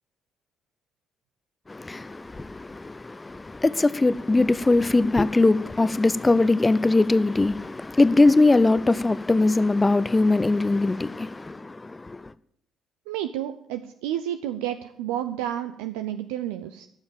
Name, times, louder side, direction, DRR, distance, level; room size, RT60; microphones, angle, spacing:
voice 1, 1.7-12.3, left 2 dB, 20° left, 0.6 m, -21 dB
voice 2, 13.1-16.9, right 11 dB, 70° right, 0.6 m, -30 dB
13.5 x 7.3 x 8.8 m
figure-of-eight pair, 45°, 0 cm